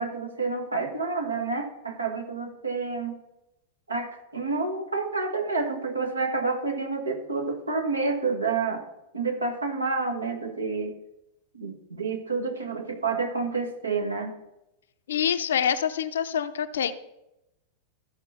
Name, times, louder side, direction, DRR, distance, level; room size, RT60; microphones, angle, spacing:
voice 1, 0.0-3.2 3.9-8.8 9.1-10.9 11.5-14.3, right 4 dB, 80° right, 3 dB, 1.6 m, -29 dB
voice 2, 15.1-16.9, left 8 dB, 65° left, 11 dB, 0.7 m, -26 dB
13.5 x 5.4 x 5.9 m, 0.89 s
figure-of-eight pair, 90°, 0 cm